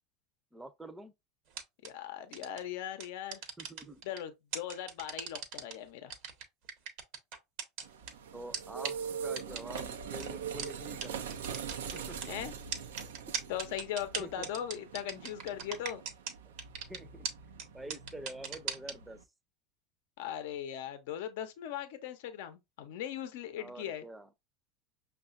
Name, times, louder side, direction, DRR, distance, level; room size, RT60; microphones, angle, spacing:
voice 1, 0.5-1.1 3.6-4.0 8.3-9.0 9.2-11.3 11.9-12.2 14.2-14.5 16.4-16.5 16.9-17.3 17.7-19.2 23.6-24.3, right 1 dB, 10° right, 0.6 m, -46 dB
sound 1, 1.5-1.9 2.3-2.6 3.0-4.2 4.5-5.7 6.1-8.1 8.5-8.6 8.8-8.9 9.4-9.8 10.2-10.3 10.6-10.7 11.0-11.1 11.3-12.3 12.7-16.3 16.6-17.0 17.2-17.3 17.6-17.7 17.9-18.9, right 6 dB, 65° right, 0.9 m, -37 dB
voice 2, 1.8-3.4 4.0-6.1 12.3-12.5 13.5-16.0 20.2-24.1, left 10 dB, 75° left, 0.6 m, -39 dB
sound 2, 7.8-19.2, right 7 dB, 90° right, 0.4 m, -43 dB
5.5 x 2.3 x 2.5 m
hypercardioid pair, 100°, 0 cm